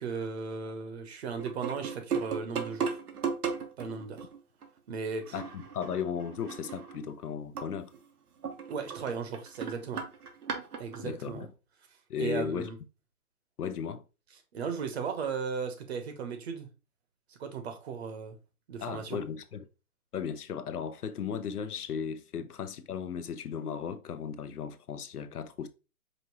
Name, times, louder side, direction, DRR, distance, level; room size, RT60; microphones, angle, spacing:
voice 1, 0.0-3.0 3.8-4.3 4.9-5.3 8.7-10.1 10.8-11.5 12.2-12.8 14.5-16.7 17.3-18.4 18.7-19.2, right 5 dB, 45° right, 1.0 m, -36 dB
sound 1, 1.4-4.7 5.2-7.2 7.5-7.7 7.9-8.0 8.4-11.1, right 6 dB, 80° right, 1.2 m, -36 dB
voice 2, 5.3-7.9 11.0-11.5 12.1-12.7 13.6-14.0 18.8-19.7 20.1-25.7, left 7 dB, 85° left, 0.7 m, -36 dB
5.2 x 2.8 x 2.9 m
hypercardioid pair, 145°, 45 cm